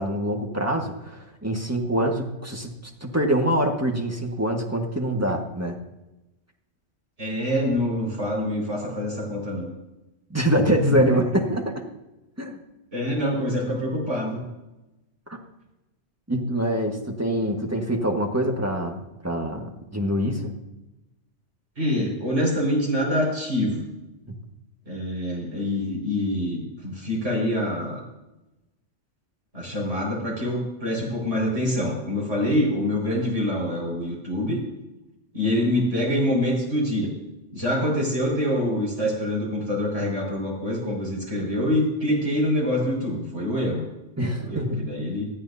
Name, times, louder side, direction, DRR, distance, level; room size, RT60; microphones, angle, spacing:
voice 1, 0.0-2.7 3.0-5.8 10.3-11.8 12.4-12.6 15.3-15.4 16.3-20.5 44.2-44.9, right 1 dB, 15° right, 1 dB, 1.7 m, -25 dB
voice 2, 7.2-9.7 11.1-11.2 12.9-14.4 21.8-23.9 24.9-28.0 29.5-34.6 35.3-37.1 37.5-43.9 44.4-45.3, left 1 dB, 80° right, -3 dB, 6.2 m, -25 dB
20.0 x 14.0 x 2.8 m, 0.99 s
omnidirectional pair, 1.2 m